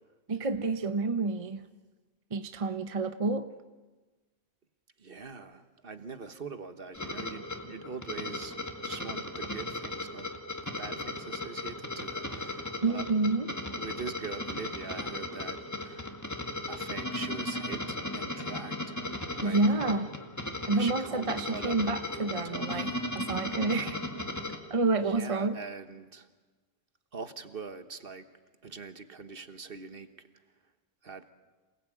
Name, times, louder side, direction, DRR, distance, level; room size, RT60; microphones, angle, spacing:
voice 1, 0.3-1.7 2.3-3.5 12.8-13.5 19.4-20.1 20.7-24.0 24.7-25.6, right 3 dB, 30° right, 10 dB, 0.8 m, -29 dB
voice 2, 5.0-10.3 10.6-13.1 13.8-16.2 16.7-19.0 19.4-20.1 20.7-23.0 25.0-26.3 27.1-28.3 28.6-30.1 31.0-31.2, right 4 dB, 45° right, 10 dB, 1.5 m, -43 dB
sound 1, 6.9-24.6, left 2 dB, 15° left, 1.9 m, -36 dB
27.5 x 19.5 x 9.0 m, 1.2 s
omnidirectional pair, 1.3 m